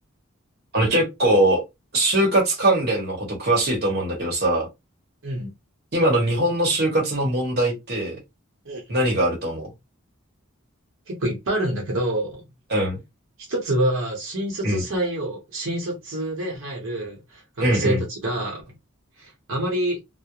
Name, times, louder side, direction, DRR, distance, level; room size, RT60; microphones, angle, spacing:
voice 1, 0.7-1.6 1.9-4.7 5.9-8.2 8.9-9.7 12.7-13.0 14.6-14.8 17.6-18.0, right 1 dB, 50° right, 1.0 m, -21 dB
voice 2, 5.2-5.5 8.7-8.8 11.1-12.5 13.4-18.6 19.2-20.0, right 1 dB, 70° right, 0.8 m, -27 dB
2.3 x 2.0 x 2.9 m
head